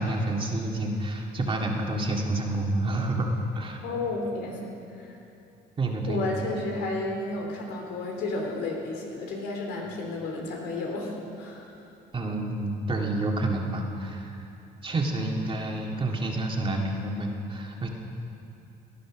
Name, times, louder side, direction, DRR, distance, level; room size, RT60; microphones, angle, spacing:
voice 1, 0.0-3.3 3.6-3.8 5.8-6.2 12.1-14.5 14.8-17.9, right 2 dB, 30° right, 0 dB, 2.0 m, -29 dB
voice 2, 3.8-4.7 4.9-5.2 6.1-11.7, left 2 dB, 85° left, 0 dB, 3.4 m, -32 dB
18.0 x 11.0 x 6.2 m, 2.8 s
cardioid pair, 110°, 17 cm